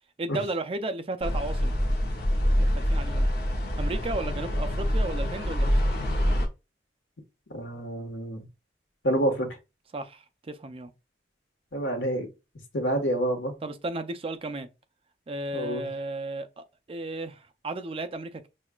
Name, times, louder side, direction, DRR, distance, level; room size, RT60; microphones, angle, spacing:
voice 1, 0.2-1.7 2.6-3.3 3.8-5.8 9.9-10.9 13.6-14.7 15.3-18.5, right 2 dB, 30° right, 0.4 m, -34 dB
sound 1, 1.2-6.5, equal, 60° left, 0.8 m, -25 dB
voice 2, 7.5-8.4 9.0-9.5 11.7-12.3 12.7-13.5 15.5-15.8, right 1 dB, 90° left, 1.3 m, -27 dB
6.1 x 2.4 x 2.3 m
head